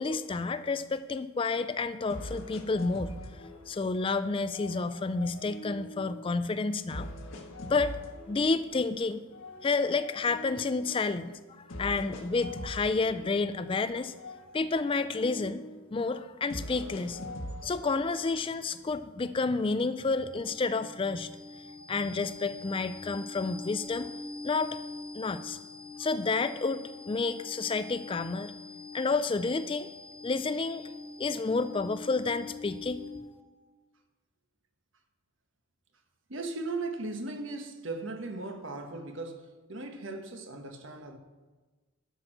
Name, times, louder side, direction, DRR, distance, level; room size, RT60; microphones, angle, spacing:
voice 1, 0.0-7.1 7.7-8.0 8.3-9.2 9.6-14.1 14.5-15.6 15.9-17.2 17.6-21.3 21.9-24.1 24.4-24.8 25.1-25.6 26.0-28.5 28.9-29.9 30.2-30.9 31.2-33.0, left 3 dB, 25° left, 0.3 m, -30 dB
sound 1, 1.4-1.5 2.1-4.1 4.5-6.3 6.9-8.9 9.3-11.1 11.7-13.9 14.1-15.9 16.5-18.5, left 1 dB, 70° left, 1.5 m, -43 dB
sound 2, 20.0-33.5, left 3 dB, 35° right, 1.7 m, -44 dB
voice 2, 36.3-41.2, right 3 dB, 65° right, 1.2 m, -37 dB
12.0 x 6.3 x 7.6 m
head